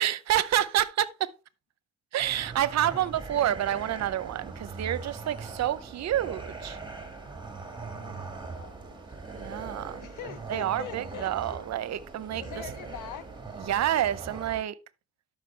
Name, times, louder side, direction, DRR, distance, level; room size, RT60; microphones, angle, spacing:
voice 1, 0.0-1.3 2.1-6.8 9.3-10.1 10.5-12.4 13.7-14.7, right 12 dB, 60° right, 0.7 m, -28 dB
sound 1, 2.2-14.6, right 4 dB, 15° right, 1.9 m, -41 dB
voice 2, 2.8-3.1 7.9-9.0 10.0-11.6 12.4-13.3, left 11 dB, 90° left, 0.8 m, -43 dB
12.5 x 5.8 x 3.3 m
cardioid pair, 90°, 30 cm